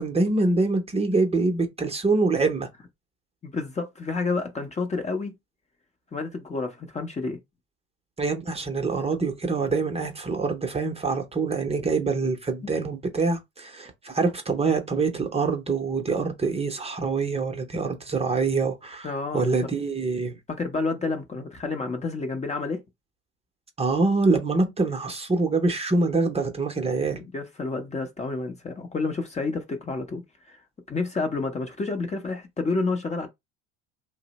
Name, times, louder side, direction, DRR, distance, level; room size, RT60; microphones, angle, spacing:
voice 1, 0.0-2.7 8.2-20.4 23.8-27.2, right 3 dB, 20° right, 0.7 m, -25 dB
voice 2, 3.4-5.3 6.1-7.4 12.7-12.8 19.0-19.7 20.5-22.8 27.2-30.2 30.5-30.6 30.9-33.3, left 3 dB, 20° left, 0.7 m, -29 dB
2.6 x 2.0 x 3.9 m
supercardioid pair, 90°, 32 cm